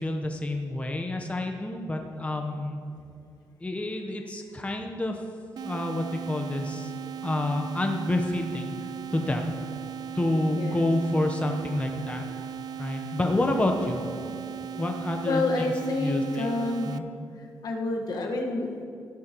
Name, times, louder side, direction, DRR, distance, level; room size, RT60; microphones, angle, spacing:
voice 1, 0.0-2.8 3.6-5.2 5.6-6.9 7.2-8.7 9.1-9.5 10.1-12.3 12.8-14.0 14.8-15.7 16.0-16.5 16.8-17.0, left 1 dB, 15° left, 3 dB, 1.0 m, -28 dB
sound 1, 5.6-17.0, right 8 dB, 60° right, 0.5 m, -38 dB
voice 2, 10.5-10.8 15.2-17.0 17.4-18.8, left 2 dB, 65° left, 1 dB, 1.6 m, -29 dB
15.5 x 11.5 x 3.1 m, 2.5 s
cardioid pair, 80°, 8 cm